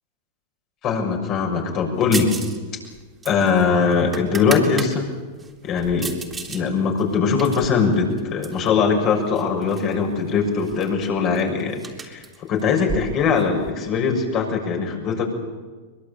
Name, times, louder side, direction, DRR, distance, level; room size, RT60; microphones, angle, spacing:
voice 1, 0.8-2.3 3.2-5.1 5.6-6.1 6.5-12.2 12.5-15.3, left 5 dB, 40° left, 2 dB, 6.6 m, -21 dB
sound 1, 2.1-2.6 2.8-4.9 5.4-6.6 7.0-8.7 9.4-9.9 10.2-10.3 10.6-13.7, right 4 dB, 15° right, 3.6 m, -34 dB
23.0 x 22.0 x 8.8 m, 1.4 s
hypercardioid pair, 120°, 0 cm